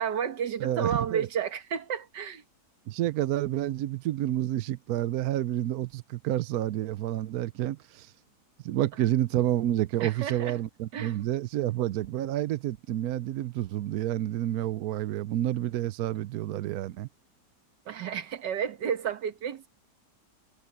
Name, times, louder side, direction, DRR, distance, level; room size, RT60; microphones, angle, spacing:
voice 1, 0.0-2.4 10.0-10.6 10.9-11.2 17.9-19.7, right 8 dB, 85° right, 1.9 m, -31 dB
voice 2, 0.6-1.3 2.9-8.1 8.6-17.1, right 13 dB, 70° right, 1.0 m, -29 dB
omnidirectional pair, 1.8 m